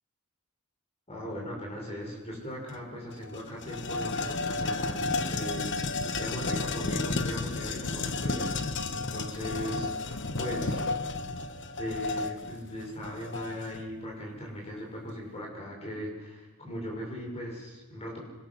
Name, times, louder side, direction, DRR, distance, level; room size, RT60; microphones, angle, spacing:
voice 1, 1.1-8.6 8.9-10.8 11.8-18.2, equal, 30° left, -2 dB, 5.8 m, -38 dB
sound 1, 2.7-2.8 3.1-13.8, left 3 dB, 55° left, 1.2 m, -32 dB
26.5 x 21.0 x 6.2 m, 1.2 s
head